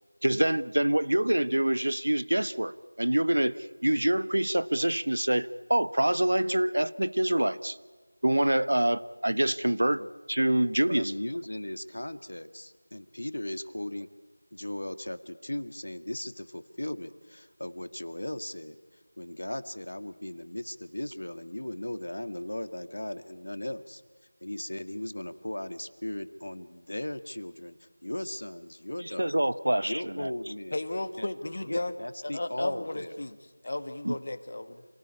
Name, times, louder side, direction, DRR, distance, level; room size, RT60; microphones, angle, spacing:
voice 1, 0.2-3.6 3.8-7.8 8.2-10.0 10.3-11.1 29.2-30.3 34.0-34.1, right 1 dB, 70° right, 15 dB, 1.1 m, -26 dB
voice 2, 10.9-14.1 14.5-24.0 24.4-27.8 28.0-29.3 29.9-30.8 31.2-31.3 31.7-33.2, left 1 dB, 70° left, 11 dB, 1.6 m, -37 dB
voice 3, 30.7-31.9 32.2-33.4 33.6-34.8, left 2 dB, 45° left, 10 dB, 1.6 m, -34 dB
27.0 x 18.0 x 9.8 m, 1.3 s
figure-of-eight pair, 175°, 0 cm